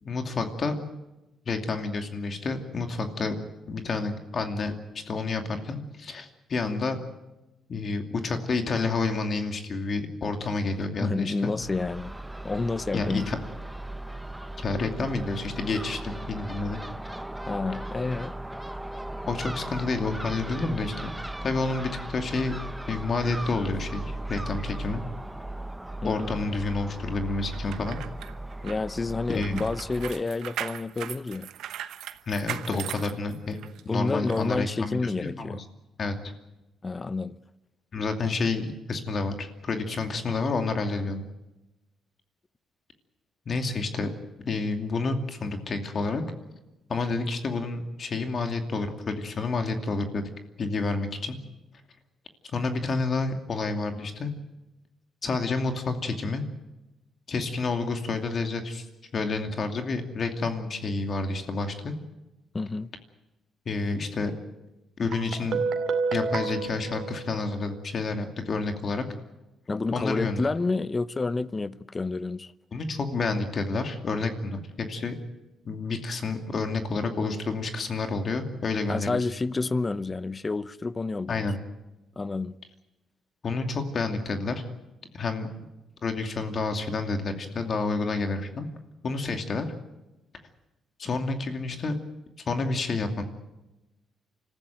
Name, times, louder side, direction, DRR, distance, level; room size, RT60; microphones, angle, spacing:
voice 1, 0.0-0.9 1.4-3.3 3.7-4.7 5.1-7.0 7.7-11.5 12.9-13.4 14.6-16.8 19.3-20.9 21.4-22.5 22.9-25.0 26.0-28.0 29.3-29.6 32.3-33.6 33.9-35.6 36.0-36.1 37.9-41.2 43.5-44.1 44.5-46.2 46.9-50.3 50.6-51.4 52.5-54.3 55.2-56.5 57.3-58.9 59.1-61.9 63.7-64.3 65.0-65.6 66.1-69.1 69.9-70.4 72.7-75.1 75.6-79.2 81.3-81.6 83.4-84.6 85.1-85.5 86.0-88.7 89.0-89.7 91.0-91.9 92.5-93.2, left 3 dB, 45° left, 2.5 m, -29 dB
voice 2, 11.0-12.1 12.4-13.3 17.5-18.4 26.0-26.3 28.6-31.5 33.9-35.6 36.8-37.4 62.5-62.9 69.7-72.5 78.9-81.4 82.2-82.6, left 3 dB, 25° left, 0.8 m, -29 dB
Crow / Gull seagull, 11.6-30.2, right 1 dB, 5° right, 0.8 m, -37 dB
sound 1, 27.5-33.8 34.3-34.4, right 11 dB, 80° right, 1.0 m, -38 dB
Guitar, 65.1-67.9, right 4 dB, 65° right, 2.4 m, -30 dB
25.5 x 14.5 x 9.3 m
cardioid pair, 90°, 0 cm